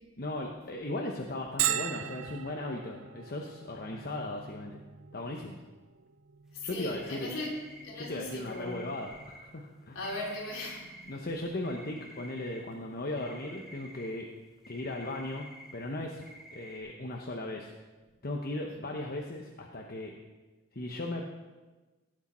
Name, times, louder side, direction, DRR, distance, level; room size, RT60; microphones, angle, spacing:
voice 1, 0.2-4.8 5.1-5.6 6.6-7.4 7.9-10.0 11.1-14.3 14.7-15.5 15.7-16.2 16.5-17.7 18.2-20.1 20.7-21.3, left 2 dB, 45° left, 1 dB, 1.0 m, -37 dB
Bell, 1.6-17.0, right 10 dB, 65° right, 0.6 m, -42 dB
voice 2, 6.5-7.5 7.8-8.9 9.9-11.0, left 1 dB, 65° left, -4 dB, 4.2 m, -38 dB
sound 1, 6.9-8.2 8.5-9.4 10.0-11.1 11.5-12.9 13.2-14.1 14.6-15.8 16.2-16.8, equal, 5° right, 1.9 m, -51 dB
18.0 x 8.5 x 4.4 m, 1.2 s
head